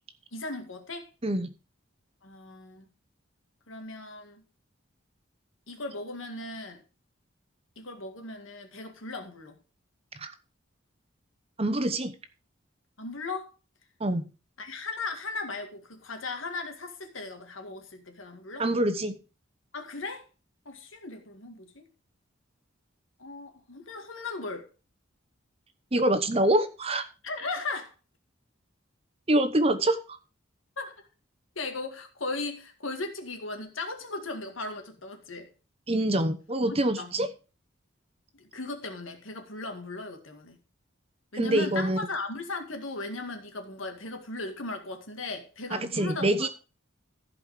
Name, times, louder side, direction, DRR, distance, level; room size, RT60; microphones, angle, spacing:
voice 1, 0.3-1.1 2.2-2.9 3.7-4.4 5.7-6.8 7.8-9.6 13.0-13.5 14.6-18.7 19.7-20.2 20.7-21.9 23.2-24.7 27.2-27.9 30.8-30.9 31.6-35.5 36.7-37.1 38.4-40.6 41.3-46.5, left 3 dB, 80° left, 2.1 m, -37 dB
voice 2, 11.6-12.1 14.0-14.2 18.6-19.2 25.9-27.1 29.3-30.2 35.9-37.3 41.3-42.0 45.7-46.5, right 1 dB, 30° right, 0.9 m, -25 dB
15.0 x 5.1 x 4.9 m
head